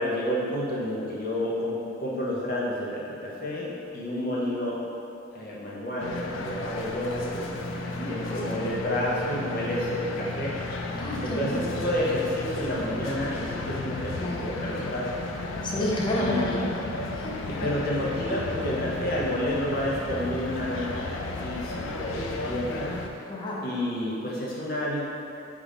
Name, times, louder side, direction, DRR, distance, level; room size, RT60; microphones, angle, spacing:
voice 1, 0.0-4.8 5.3-7.6 8.1-10.5 11.2-15.1 16.2-16.5 17.5-23.0 23.6-25.1, left 1 dB, 50° left, -5 dB, 0.9 m, -30 dB
sound 1, 6.0-23.1, left 2 dB, 85° left, 0.4 m, -34 dB
voice 2, 8.0-8.7 10.9-11.7 14.2-14.5 15.6-16.7 17.1-17.9 23.3-23.6, equal, 25° left, -5 dB, 0.6 m, -30 dB
3.9 x 3.5 x 3.5 m, 2.7 s
head